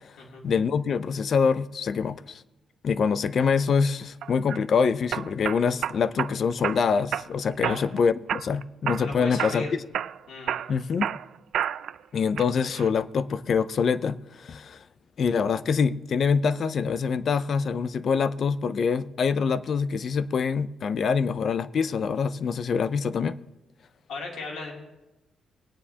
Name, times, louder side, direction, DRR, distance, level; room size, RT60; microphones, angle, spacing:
voice 1, 0.4-2.4 2.8-9.7 10.7-11.1 12.1-14.8 15.2-23.4, left 6 dB, 45° left, 0.5 m, -25 dB
sound 1, 4.2-4.6 5.1-6.3 6.6-7.3 7.6-8.0 8.3-9.1 9.4-9.6 9.9-12.0 12.4-12.9, right 10 dB, 65° right, 0.4 m, -30 dB
voice 2, 9.0-9.7 10.3-10.5 24.1-24.7, left 3 dB, 75° left, 2.8 m, -36 dB
20.5 x 9.6 x 2.8 m
cardioid pair, 150°, 0 cm